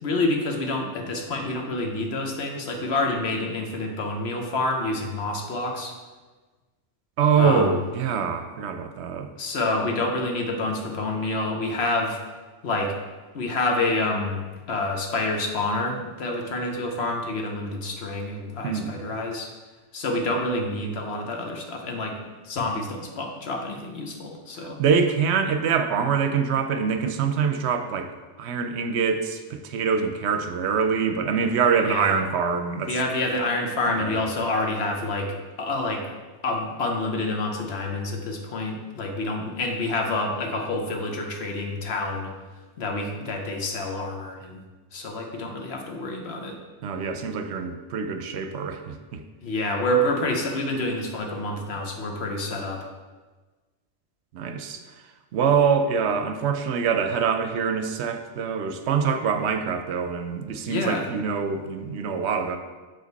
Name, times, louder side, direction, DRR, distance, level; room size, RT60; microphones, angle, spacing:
voice 1, 0.0-5.9 7.4-7.7 9.4-12.2 12.6-12.9 13.3-19.5 19.9-22.2 22.4-24.8 31.8-32.2 32.9-36.0 36.4-42.3 42.8-44.6 44.9-46.6 49.4-52.9 60.6-61.1, left 2 dB, 65° left, 2 dB, 1.1 m, -28 dB
voice 2, 7.2-9.3 18.6-18.9 24.6-28.1 28.4-32.9 34.0-34.2 46.8-49.2 54.3-54.8 55.3-62.6, right 6 dB, 75° right, 8 dB, 0.8 m, -24 dB
6.3 x 5.0 x 4.0 m, 1.3 s
omnidirectional pair, 1.2 m